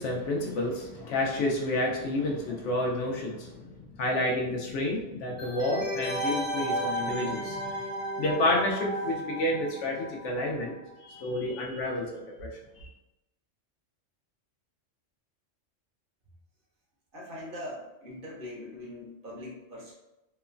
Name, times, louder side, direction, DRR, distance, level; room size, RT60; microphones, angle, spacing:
voice 1, 0.0-7.8 8.2-12.5 12.8-12.9, left 1 dB, 80° left, -1 dB, 0.9 m, -30 dB
sound 1, 5.4-10.9 11.1-11.2, right 1 dB, ahead, 0.6 m, -34 dB
voice 2, 17.1-19.9, left 1 dB, 50° right, -4 dB, 0.8 m, -41 dB
3.0 x 2.1 x 2.4 m, 0.93 s
omnidirectional pair, 1.3 m